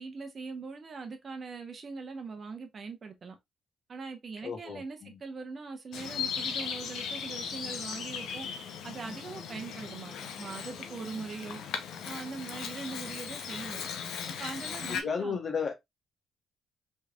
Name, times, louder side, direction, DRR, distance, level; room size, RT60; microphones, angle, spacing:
voice 1, 0.0-3.4 3.9-8.5 8.8-11.6 12.0-13.9 14.4-15.4, right 4 dB, 45° right, 0.9 m, -41 dB
voice 2, 4.4-5.2 14.9-15.7, left 5 dB, 45° left, 0.9 m, -34 dB
Bird vocalization bird call bird song, 5.9-15.0, left 7 dB, 80° left, 0.6 m, -38 dB
3.4 x 3.2 x 2.3 m
cardioid pair, 90°, 0 cm